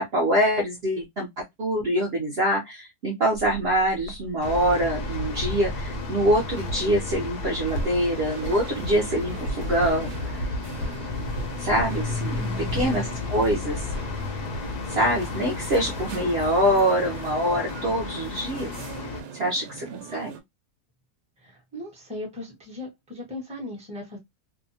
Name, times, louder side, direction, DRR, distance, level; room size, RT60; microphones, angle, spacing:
voice 1, 0.0-10.3 11.6-12.4 12.7-13.8 14.9-18.7 19.3-20.3, equal, 55° right, 0.7 m, -24 dB
sound 1, 3.3-14.9, equal, 85° left, 1.2 m, -36 dB
sound 2, 4.4-19.2, left 4 dB, 60° left, 0.6 m, -33 dB
sound 3, 7.7-20.4, right 7 dB, 80° right, 1.1 m, -42 dB
voice 2, 12.4-12.9 21.4-24.2, left 2 dB, 5° right, 0.7 m, -38 dB
2.7 x 2.2 x 2.6 m
omnidirectional pair, 1.7 m